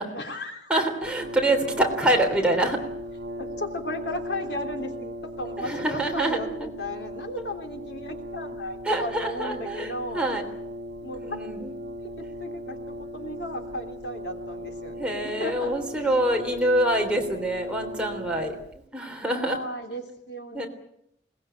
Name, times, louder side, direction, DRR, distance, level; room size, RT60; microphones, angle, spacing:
voice 1, 0.1-0.7 1.0-1.1 1.8-1.9 3.3-10.5 11.0-11.4 12.0-15.7 19.2-20.7, left 1 dB, 80° left, 4 dB, 3.2 m, -35 dB
voice 2, 0.7-2.8 5.6-6.7 8.8-10.4 11.2-11.7 15.0-19.6 20.5-20.7, right 1 dB, 5° right, 1 dB, 3.3 m, -26 dB
Brass instrument, 1.0-18.8, equal, 75° right, 2.2 m, -37 dB
22.0 x 20.0 x 9.1 m, 0.76 s
head